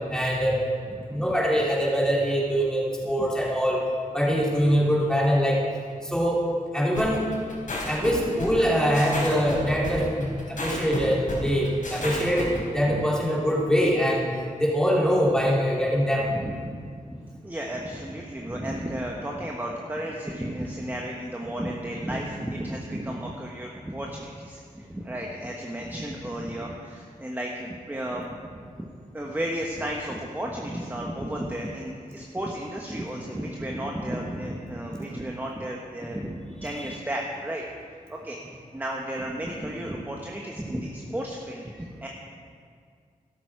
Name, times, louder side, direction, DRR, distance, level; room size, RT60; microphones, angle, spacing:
voice 1, 0.1-0.6 1.1-3.8 4.1-5.6 6.0-6.4 6.7-7.3 7.9-14.3 14.6-16.3, equal, 5° left, -4 dB, 3.3 m, -23 dB
sound 1, 7.0-12.6, left 2 dB, 70° left, 3.9 m, -32 dB
voice 2, 16.3-37.6 38.1-42.1, right 1 dB, 15° right, -1 dB, 1.2 m, -33 dB
12.5 x 12.5 x 4.8 m, 2.1 s
wide cardioid pair, 95°, 14 cm